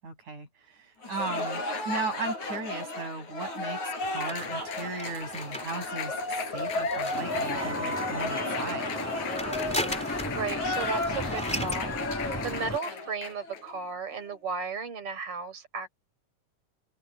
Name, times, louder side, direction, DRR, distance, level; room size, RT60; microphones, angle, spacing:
voice 1, 0.0-9.0, right 3 dB, 85° right, 9.5 m, -37 dB
Cheering / Applause, 1.0-13.6, left 2 dB, 80° left, 5.7 m, -33 dB
sound 1, 4.3-7.9 8.9-10.4 10.7-10.8 11.0-11.9, equal, ahead, 2.2 m, -38 dB
Vehicle horn car horn honking / Traffic noise roadway noise, 7.1-12.8, left 1 dB, 20° left, 0.4 m, -34 dB
voice 2, 9.8-15.9, right 4 dB, 50° right, 6.2 m, -35 dB
omnidirectional pair, 3.3 m